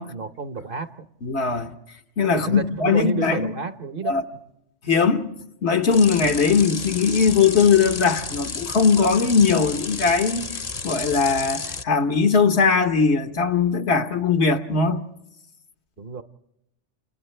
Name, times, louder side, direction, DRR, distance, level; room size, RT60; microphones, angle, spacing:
voice 1, 0.1-1.1 2.3-4.2 16.0-16.2, right 5 dB, 50° right, 1.0 m, -30 dB
voice 2, 1.2-1.7 2.2-3.5 4.1-4.2 4.8-5.3 5.6-10.5 10.8-15.0, left 5 dB, 70° left, 1.4 m, -20 dB
sound 1, 5.9-11.8, left 4 dB, 35° left, 0.9 m, -32 dB
29.5 x 29.0 x 3.3 m
omnidirectional pair, 1.2 m